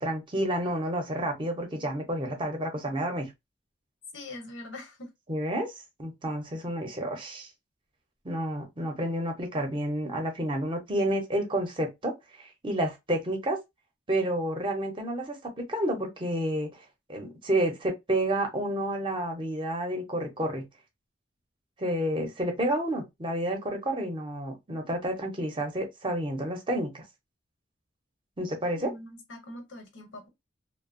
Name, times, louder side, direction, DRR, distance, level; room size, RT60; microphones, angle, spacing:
voice 1, 0.0-3.3 5.3-5.7 6.0-7.5 8.2-13.6 14.1-20.6 21.8-27.0 28.4-28.9, right 1 dB, 25° right, 0.7 m, -30 dB
voice 2, 4.1-5.1 28.7-30.3, left 1 dB, 85° left, 1.0 m, -43 dB
2.7 x 2.0 x 2.5 m
head